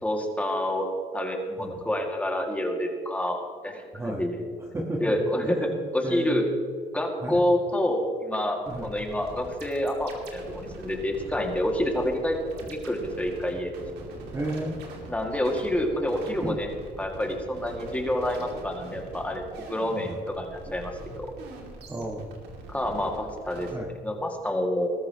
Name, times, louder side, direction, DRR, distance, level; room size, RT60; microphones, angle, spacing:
voice 1, 0.0-4.5 5.0-6.5 6.9-12.4 12.7-13.7 15.1-16.7 17.0-19.4 19.7-21.3 22.7-23.7 24.0-24.9, left 1 dB, 10° left, 1 dB, 2.2 m, -28 dB
voice 2, 3.9-4.3 4.6-5.2 5.4-6.5 7.2-7.4 8.7-8.9 12.5-12.7 14.3-14.8 16.4-16.6 20.0-20.2 20.7-20.8 21.9-22.3 23.7-23.9, right 1 dB, 15° right, 0 dB, 1.5 m, -33 dB
sound 1, 8.7-23.8, right 3 dB, 75° right, 2.7 m, -43 dB
20.5 x 13.5 x 3.1 m, 2.1 s
cardioid pair, 110°, 17 cm